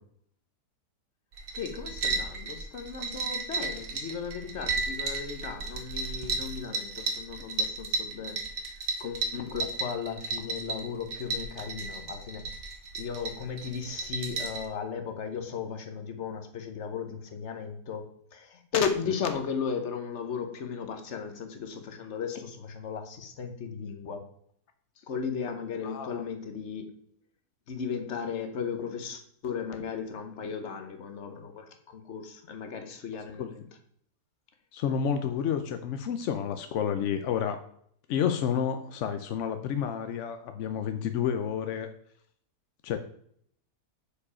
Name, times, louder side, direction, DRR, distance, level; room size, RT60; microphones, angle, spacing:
sound 1, 1.3-14.7, right 3 dB, 60° right, 1.4 m, -34 dB
voice 1, 1.5-8.4 8.7-12.4 13.0-24.2 25.1-26.9 27.7-33.6, left 6 dB, 50° left, 6 dB, 1.1 m, -35 dB
voice 2, 25.8-26.2 33.4-33.5 34.7-37.6 38.1-41.9 42.8-43.0, left 8 dB, 70° left, 8 dB, 0.7 m, -30 dB
6.8 x 4.9 x 4.8 m, 0.64 s
omnidirectional pair, 1.8 m